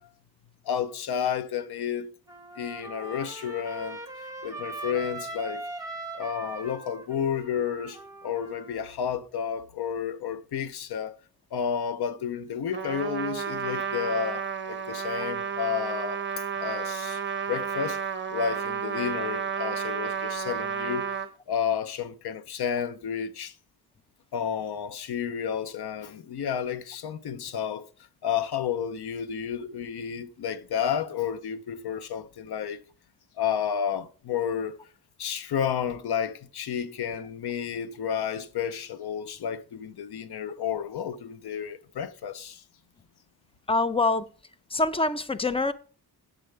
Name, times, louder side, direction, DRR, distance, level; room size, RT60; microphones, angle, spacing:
voice 1, 0.6-2.1 2.6-4.0 4.4-5.6 6.1-11.2 11.5-16.2 16.6-17.2 17.5-18.0 18.3-21.1 21.5-23.5 24.3-27.9 28.2-32.8 33.4-34.8 35.2-42.6, left 8 dB, 90° left, 0.8 m, -31 dB
Trumpet, 2.3-8.9, right 2 dB, 10° right, 1.8 m, -40 dB
Trumpet 2, 12.7-21.3, right 7 dB, 30° right, 0.9 m, -31 dB
voice 2, 43.7-44.3 44.7-45.7, left 3 dB, 15° left, 0.6 m, -25 dB
9.2 x 7.6 x 3.4 m
cardioid pair, 95°, 38 cm